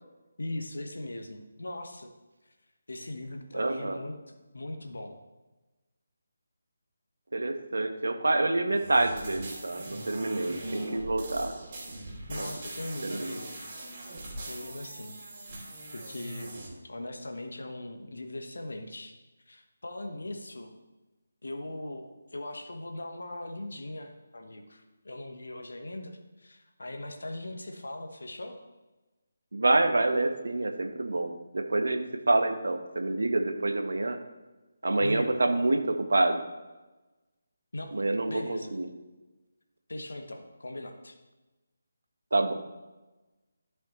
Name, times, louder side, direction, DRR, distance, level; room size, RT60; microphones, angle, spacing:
voice 1, 0.4-2.1 2.4-2.5 2.9-4.2 4.5-5.2 12.3-13.5 14.5-15.1 15.5-16.6 16.8-19.1 19.5-20.7 21.4-28.6 35.0-35.4 37.7-37.9 38.3-38.7 39.9-41.2, left 1 dB, 70° left, 5 dB, 1.1 m, -40 dB
voice 2, 3.5-4.0 7.3-11.5 12.3-12.5 13.0-13.4 29.5-34.2 34.8-36.4 37.9-38.9 42.3-42.5, right 2 dB, 65° right, 6 dB, 1.0 m, -27 dB
sound 1, 8.7-16.7, right 1 dB, 35° right, 2.7 m, -41 dB
13.5 x 5.5 x 3.0 m, 1.1 s
figure-of-eight pair, 150°, 0 cm